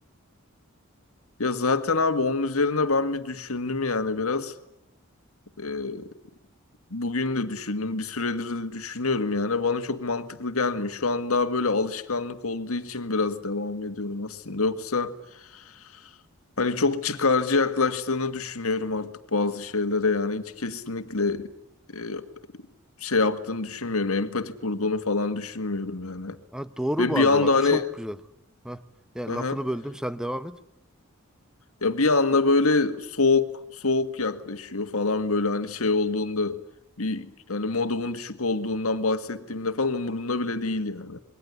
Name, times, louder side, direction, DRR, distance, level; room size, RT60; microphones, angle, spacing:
voice 1, 1.4-4.6 5.6-6.2 6.9-16.1 16.6-21.5 21.9-22.3 23.0-26.4 27.0-27.8 29.3-29.6 31.8-36.6 37.0-41.2, left 3 dB, 80° left, 1.9 m, -26 dB
voice 2, 26.5-28.2 28.6-28.8 29.1-30.6, equal, 5° right, 1.1 m, -30 dB
27.5 x 22.0 x 9.7 m
head